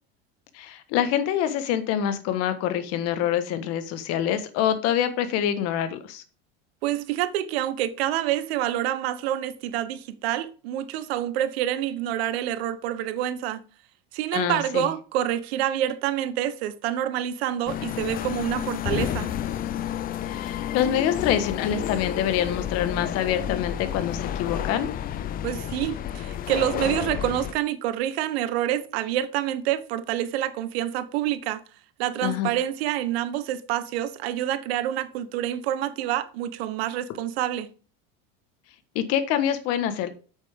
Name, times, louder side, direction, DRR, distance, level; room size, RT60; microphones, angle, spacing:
voice 1, 0.5-6.2 14.3-14.9 20.3-24.9 32.2-32.5 38.9-40.1, left 10 dB, 55° left, 1.4 m, -26 dB
voice 2, 6.8-13.6 14.1-19.3 25.4-31.6 32.0-37.7, right 12 dB, 85° right, 1.1 m, -27 dB
sound 1, 17.7-27.5, left 10 dB, 30° left, 0.5 m, -30 dB
8.2 x 6.7 x 3.6 m
supercardioid pair, 145°, 30 cm